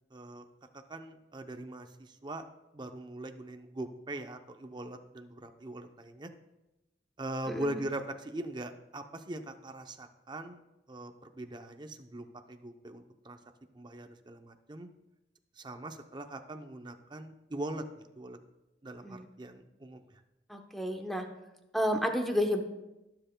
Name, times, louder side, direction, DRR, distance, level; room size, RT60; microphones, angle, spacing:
voice 1, 0.1-0.4 0.9-2.4 2.7-6.3 7.2-10.6 10.9-13.4 13.7-14.9 15.6-18.4 18.8-20.0, right 1 dB, 25° right, 7 dB, 0.6 m, -41 dB
voice 2, 20.5-21.3 21.7-22.6, equal, ahead, 4 dB, 0.8 m, -30 dB
19.0 x 7.8 x 2.2 m, 0.98 s
head